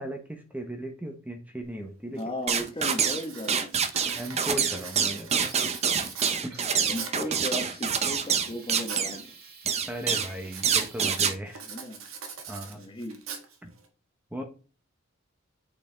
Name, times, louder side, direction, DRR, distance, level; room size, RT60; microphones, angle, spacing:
voice 1, 0.0-2.2 4.1-5.5 6.4-6.7 9.6-11.6 12.5-12.8 13.6-13.7 14.3-14.4, equal, 10° right, 0.8 m, -37 dB
Writing, 1.6-1.7 2.2-2.4 2.8-7.3 7.9-9.1 9.4-9.9 10.4-13.9, right 6 dB, 80° right, 1.4 m, -42 dB
voice 2, 2.1-4.1 6.5-9.3 11.7-12.0 12.6-13.2, left 1 dB, 25° left, 1.1 m, -36 dB
sound 1, 2.5-3.2 3.5-9.2 9.7-10.3 10.6-11.3, right 7 dB, 30° right, 0.5 m, -26 dB
sound 2, 3.7-4.9 5.3-11.1, right 5 dB, 50° right, 1.5 m, -50 dB
8.8 x 4.4 x 3.3 m
head